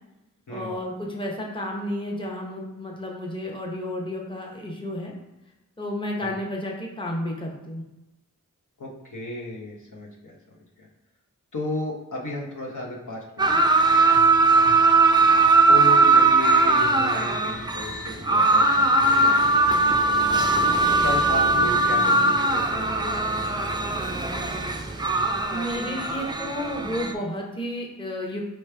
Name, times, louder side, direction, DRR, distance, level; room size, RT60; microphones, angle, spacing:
voice 1, 0.5-5.1 5.8-7.8 25.5-28.4, left 1 dB, 15° left, -1 dB, 0.9 m, -32 dB
voice 2, 8.8-10.9 11.5-13.7 15.7-19.6 21.0-24.0 24.3-24.5, left 2 dB, 65° left, -2 dB, 0.9 m, -34 dB
sound 1, 13.4-27.1, right 3 dB, 15° right, 0.4 m, -20 dB
4.7 x 3.2 x 3.3 m, 0.98 s
cardioid pair, 45°, 33 cm